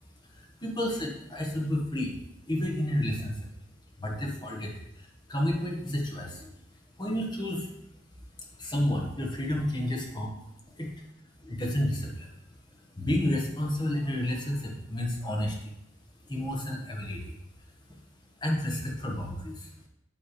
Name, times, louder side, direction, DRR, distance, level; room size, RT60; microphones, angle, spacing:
voice 1, 0.3-2.2 2.5-3.4 4.0-6.5 7.0-7.7 8.6-10.4 11.4-12.3 13.0-15.7 16.3-17.3 17.9-18.0 18.4-19.7, left 1 dB, 20° left, -1 dB, 1.3 m, -31 dB
10.5 x 3.5 x 4.9 m, 0.83 s
head